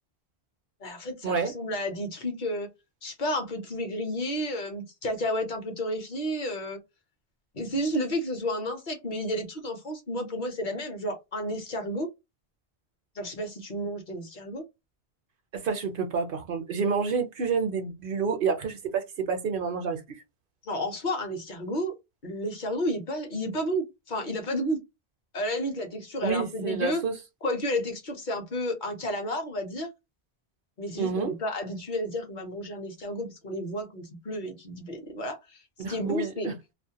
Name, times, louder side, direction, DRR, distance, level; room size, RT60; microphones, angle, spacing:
voice 1, 0.8-2.7 3.0-6.8 7.5-12.1 13.2-14.6 20.6-21.9 22.2-24.8 25.3-27.0 27.4-29.9 30.8-35.6 35.9-36.5, equal, 55° left, 0.8 m, -31 dB
voice 2, 15.5-20.2 26.2-27.2 31.0-31.3 35.8-36.5, right 5 dB, 65° right, 0.7 m, -29 dB
2.4 x 2.1 x 2.8 m
omnidirectional pair, 1.1 m